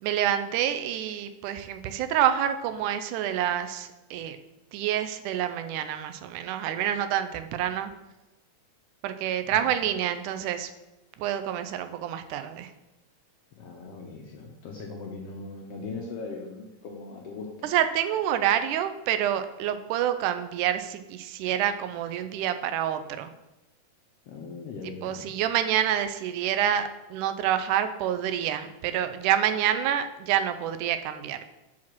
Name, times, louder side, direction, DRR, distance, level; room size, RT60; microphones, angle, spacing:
voice 1, 0.0-4.4 4.7-7.9 9.0-10.7 11.2-12.7 17.6-23.3 25.0-31.4, right 10 dB, 90° right, 9 dB, 2.1 m, -27 dB
voice 2, 13.5-17.7 24.3-25.3, left 4 dB, 70° left, 0 dB, 1.5 m, -39 dB
5.7 x 4.8 x 6.0 m, 0.99 s
omnidirectional pair, 3.5 m